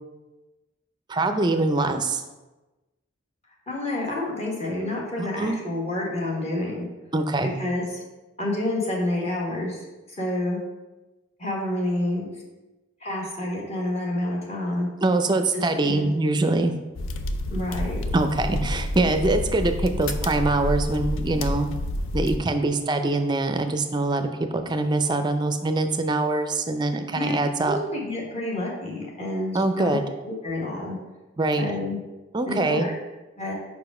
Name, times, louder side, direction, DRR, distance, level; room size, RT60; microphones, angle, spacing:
voice 1, 1.1-2.2 5.2-5.6 7.1-7.5 15.0-16.7 18.1-21.7 22.1-27.8 29.5-30.0 31.4-31.7 32.3-32.9, right 2 dB, 20° right, 7 dB, 0.4 m, -23 dB
voice 2, 3.7-6.9 7.6-8.0 8.4-9.8 10.2-10.6 11.4-12.3 13.0-14.9 15.5-16.1 17.5-18.0 27.1-27.3 27.6-31.0 31.6-32.0 32.5-33.0 33.4-33.5, left 1 dB, 35° left, -3 dB, 1.4 m, -29 dB
sound 1, 16.9-22.4, left 1 dB, 90° left, 0.5 m, -29 dB
5.0 x 4.9 x 4.8 m, 1.1 s
head